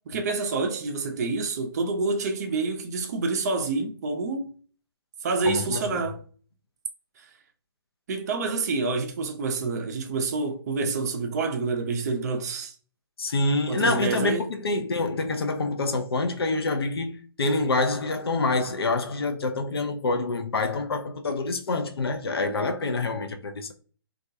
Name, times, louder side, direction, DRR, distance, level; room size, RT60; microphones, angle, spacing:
voice 1, 0.1-4.5 5.2-6.2 8.1-12.7 13.7-14.5, right 3 dB, 40° right, 0.5 m, -28 dB
voice 2, 5.4-6.0 13.2-23.7, left 3 dB, 70° left, 0.4 m, -26 dB
2.3 x 2.1 x 2.6 m
figure-of-eight pair, 130°, 13 cm